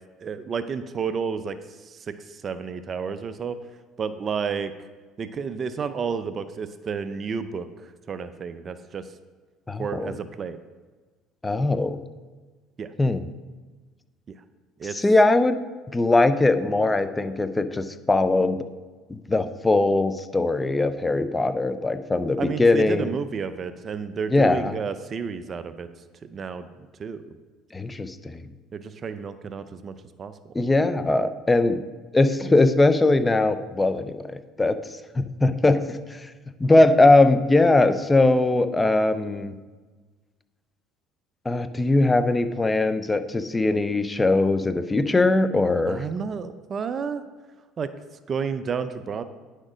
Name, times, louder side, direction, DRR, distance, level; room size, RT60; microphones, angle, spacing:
voice 1, 0.2-1.6 1.8-3.6 4.0-4.7 5.2-9.0 9.8-10.6 12.8-12.9 14.8-15.0 22.4-25.9 26.2-27.2 28.7-30.5 45.9-47.2 47.8-47.9 48.3-49.2, right 6 dB, 35° right, 11 dB, 0.5 m, -31 dB
voice 2, 9.7-10.1 11.4-12.0 13.0-13.2 14.9-15.6 15.9-18.6 19.1-23.1 24.3-24.8 27.7-28.5 30.5-31.8 32.1-34.8 35.1-36.3 36.6-39.6 41.4-46.0, left 2 dB, 15° left, 11 dB, 0.6 m, -21 dB
9.9 x 6.4 x 5.0 m, 1.4 s
supercardioid pair, 105°, 0 cm